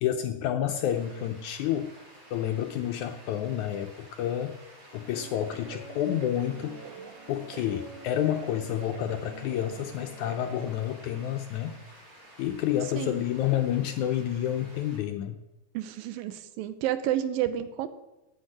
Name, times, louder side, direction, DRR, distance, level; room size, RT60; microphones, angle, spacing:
voice 1, 0.0-2.0 2.3-4.5 4.9-6.8 7.3-11.8 12.4-15.4, left 11 dB, 80° left, 6 dB, 1.8 m, -29 dB
sound 1, 0.9-15.0, equal, 35° right, 2.9 m, -52 dB
Guitar, 5.2-10.6, right 6 dB, 70° right, 2.6 m, -45 dB
voice 2, 15.7-17.9, right 12 dB, 90° right, 12 dB, 2.5 m, -30 dB
10.0 x 8.2 x 8.8 m, 1.0 s
omnidirectional pair, 4.0 m